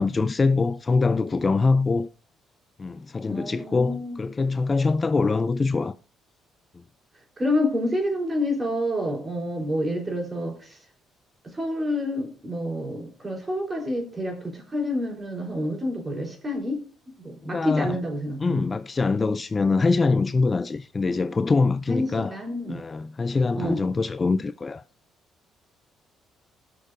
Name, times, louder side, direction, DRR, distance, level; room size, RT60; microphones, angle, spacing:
voice 1, 0.0-2.1 2.8-5.9 17.4-18.0 18.4-22.4 22.7-24.8, left 4 dB, 25° left, 0.3 m, -24 dB
voice 2, 3.3-4.2 7.4-10.8 11.4-16.8 17.2-18.6 21.9-22.8 23.6-23.8, left 1 dB, 20° right, 3.6 m, -28 dB
19.5 x 6.5 x 2.5 m
cardioid pair, 115°, 0 cm